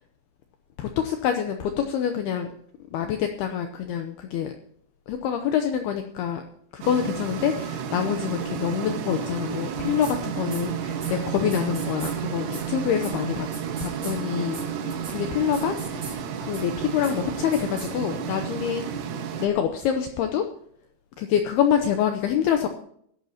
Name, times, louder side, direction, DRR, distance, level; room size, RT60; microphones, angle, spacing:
voice 1, 0.8-2.5 2.9-4.5 5.1-6.4 6.7-13.5 13.8-14.6 15.1-18.8 19.4-20.4 21.2-22.7, left 9 dB, 90° left, 6 dB, 2.2 m, -26 dB
sound 1, 6.8-19.5, right 7 dB, 80° right, 3.9 m, -31 dB
sound 2, 10.0-10.1 10.5-10.6 11.0-11.1 11.5-12.1 12.5-12.6 13.0-13.1 13.5-14.1 14.5-14.6 14.9-15.1 15.5-16.1 16.5-16.6 17.0-17.1 17.5-17.9, right 4 dB, 30° right, 4.5 m, -39 dB
21.0 x 11.5 x 2.8 m, 0.68 s
omnidirectional pair, 5.5 m